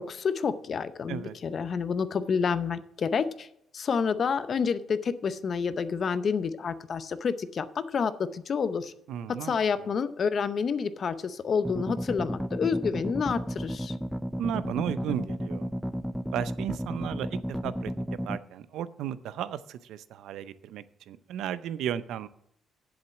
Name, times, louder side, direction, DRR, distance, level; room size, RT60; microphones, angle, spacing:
voice 1, 0.0-3.5 3.7-8.9 9.4-13.9, left 6 dB, 50° left, 13 dB, 0.7 m, -29 dB
voice 2, 9.1-9.5 9.8-9.9 14.4-15.7 16.3-17.9 18.2-22.3, right 10 dB, 85° right, 16 dB, 0.5 m, -34 dB
sound 1, 11.6-18.4, equal, ahead, 0.5 m, -33 dB
7.7 x 7.3 x 7.1 m, 0.74 s
cardioid pair, 90°, 0 cm